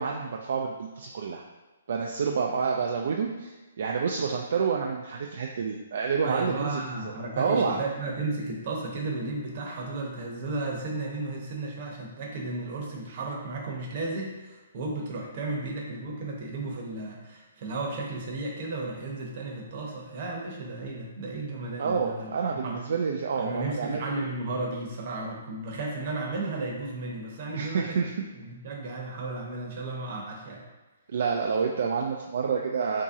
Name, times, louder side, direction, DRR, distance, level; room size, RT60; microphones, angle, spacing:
voice 1, 0.0-1.4 1.9-7.8 21.8-24.0 27.5-28.1 31.1-33.0, right 5 dB, 60° right, 0 dB, 0.3 m, -28 dB
voice 2, 6.2-22.8 23.3-28.0 28.4-30.6, right 2 dB, 40° right, -1 dB, 0.8 m, -34 dB
2.9 x 2.7 x 3.6 m, 1.2 s
hypercardioid pair, 160°, 0 cm